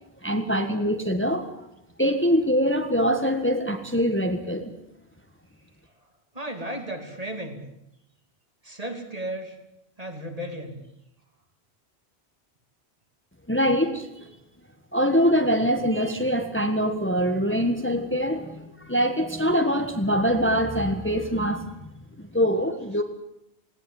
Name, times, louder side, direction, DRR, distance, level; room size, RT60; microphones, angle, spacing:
voice 1, 0.2-1.7 2.0-4.7 13.5-14.3 14.9-21.8 22.2-23.0, equal, 10° left, 5 dB, 1.6 m, -24 dB
voice 2, 6.3-7.6 8.6-9.6 10.0-10.8, right 1 dB, 35° right, 4 dB, 3.1 m, -34 dB
19.5 x 18.5 x 9.4 m, 0.85 s
omnidirectional pair, 1.1 m